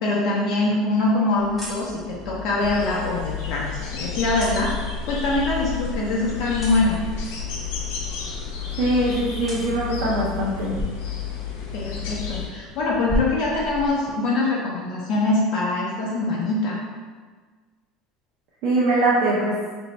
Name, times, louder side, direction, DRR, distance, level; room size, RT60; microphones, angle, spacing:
voice 1, 0.0-4.7 5.1-7.0 11.7-16.8, left 2 dB, 50° left, -5 dB, 0.6 m, -23 dB
sound 1, 1.4-14.1, equal, 5° right, 0.7 m, -37 dB
sound 2, 2.6-12.5, left 8 dB, 90° left, 0.7 m, -31 dB
voice 2, 8.8-10.8 18.6-19.6, right 1 dB, 50° right, -6 dB, 0.7 m, -22 dB
3.0 x 2.6 x 4.3 m, 1.5 s
cardioid pair, 175°, 0 cm